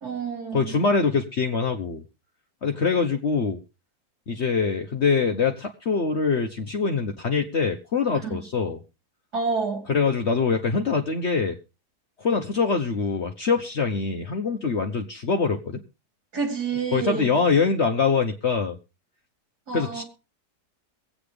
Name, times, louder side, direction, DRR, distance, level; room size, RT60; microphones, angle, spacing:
voice 1, 0.0-0.8 8.2-8.4 9.3-9.9 16.3-17.3 19.7-20.0, right 5 dB, 80° right, 3.7 m, -28 dB
voice 2, 0.5-2.0 2.6-3.6 4.3-8.8 9.9-11.6 12.2-15.8 16.9-18.8 19.7-20.0, left 5 dB, 50° left, 1.1 m, -24 dB
23.5 x 8.7 x 3.3 m
omnidirectional pair, 1.7 m